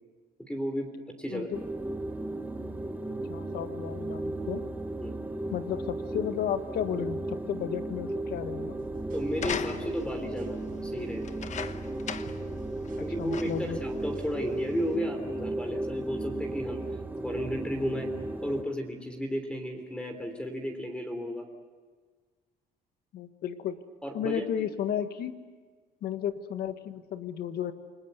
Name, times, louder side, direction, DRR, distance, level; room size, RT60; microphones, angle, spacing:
voice 1, 0.4-1.5 5.0-5.2 9.1-11.3 13.0-16.8 17.2-18.1 18.4-21.5 24.0-24.7, equal, 5° left, 5 dB, 3.3 m, -33 dB
sound 1, 1.5-18.6, right 2 dB, 10° right, 1.4 m, -35 dB
voice 2, 3.3-4.6 5.5-8.8 13.2-13.8 23.1-23.8 24.1-25.3 26.0-27.7, left 9 dB, 65° left, 9 dB, 1.6 m, -33 dB
sound 2, 8.7-14.4, right 5 dB, 60° right, 4.8 m, -50 dB
sound 3, 9.3-10.1 11.2-12.5 12.9-13.0 13.3-13.8 14.5-14.6, left 7 dB, 45° left, 1.1 m, -37 dB
28.5 x 20.0 x 8.2 m, 1.5 s
cardioid pair, 110°, 17 cm